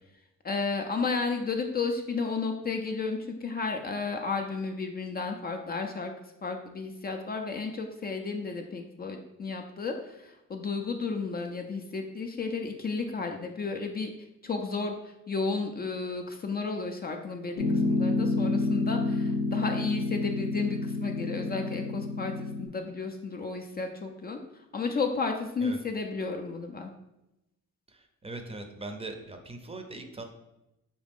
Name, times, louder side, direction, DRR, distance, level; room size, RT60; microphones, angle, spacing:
voice 1, 0.4-6.1 6.4-14.1 14.4-14.9 15.3-24.4 24.7-26.9, left 4 dB, 30° left, 4 dB, 0.4 m, -33 dB
Piano, 17.6-22.7, left 2 dB, 80° left, 0.7 m, -29 dB
voice 2, 27.9-30.2, right 2 dB, 20° right, 4 dB, 0.6 m, -40 dB
5.1 x 2.4 x 3.4 m, 0.90 s
cardioid pair, 90°, 30 cm